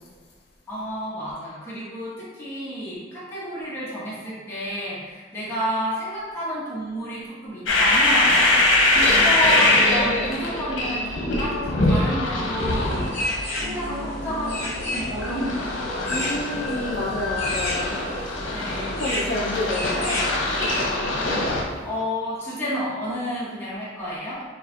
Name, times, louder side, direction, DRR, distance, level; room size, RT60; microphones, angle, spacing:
voice 1, 0.7-13.1 13.6-16.3 18.5-19.1 21.8-24.4, equal, 10° left, -9 dB, 1.2 m, -30 dB
sound 1, 7.7-21.6, left 2 dB, 80° left, 0.8 m, -23 dB
sound 2, 12.6-20.8, left 1 dB, 35° left, 1.4 m, -33 dB
voice 2, 16.1-18.0 19.0-20.2, left 2 dB, 55° left, -3 dB, 0.5 m, -29 dB
6.5 x 2.4 x 2.7 m, 1.5 s
head